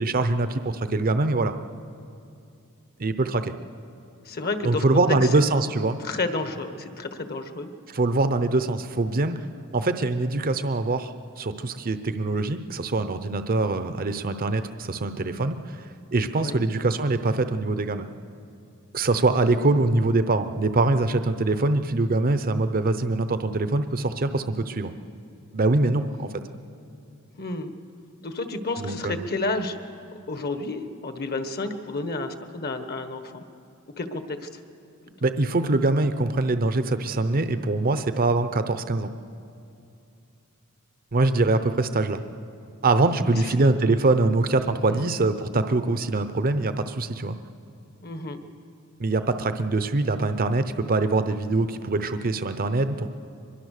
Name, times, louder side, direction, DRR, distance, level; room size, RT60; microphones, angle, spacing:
voice 1, 0.0-1.5 3.0-3.5 4.6-6.0 7.9-9.3 9.7-15.9 16.1-18.1 18.9-24.9 25.5-26.3 28.8-29.3 35.2-39.1 41.1-42.2 42.8-47.4 49.0-53.1, right 2 dB, 40° right, 10 dB, 0.7 m, -23 dB
voice 2, 4.2-5.3 6.0-7.7 16.4-16.6 27.4-27.7 28.2-29.8 30.3-33.4 34.0-34.6 43.3-43.5 44.8-45.1 48.0-48.4, left 2 dB, 45° left, 8 dB, 1.3 m, -31 dB
23.5 x 21.5 x 6.6 m, 2.6 s
head